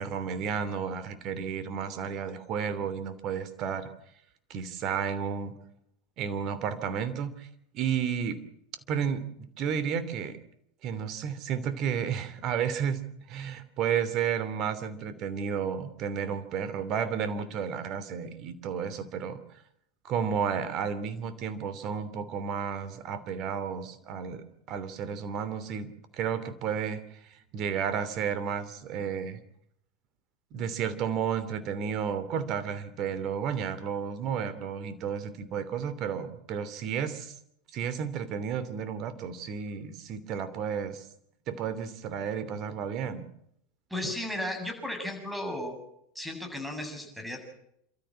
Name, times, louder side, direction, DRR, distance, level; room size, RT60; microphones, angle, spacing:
voice 1, 0.0-3.9 4.5-5.5 6.2-7.5 7.7-8.4 8.9-10.4 10.8-13.0 13.3-19.4 20.0-25.9 26.1-29.4 30.5-37.3 37.7-41.0 41.5-43.3 44.0-44.1, right 7 dB, 45° right, 13 dB, 3.0 m, -32 dB
voice 2, 43.9-45.8 46.1-47.4, left 1 dB, 5° right, 5 dB, 7.7 m, -35 dB
29.0 x 13.5 x 7.6 m, 0.74 s
hypercardioid pair, 90°, 0 cm